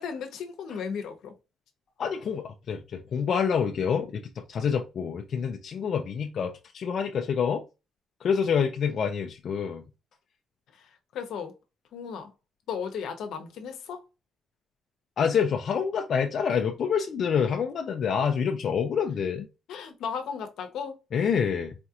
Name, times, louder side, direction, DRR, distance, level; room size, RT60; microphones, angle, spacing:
voice 1, 0.0-1.3 10.7-11.5 11.9-12.3 12.7-14.0 19.7-21.0, left 6 dB, 75° left, 0.9 m, -35 dB
voice 2, 2.0-7.6 8.2-9.8 15.2-19.5 21.1-21.7, left 7 dB, 50° left, 0.5 m, -27 dB
4.2 x 2.8 x 2.4 m
cardioid pair, 140°, 0 cm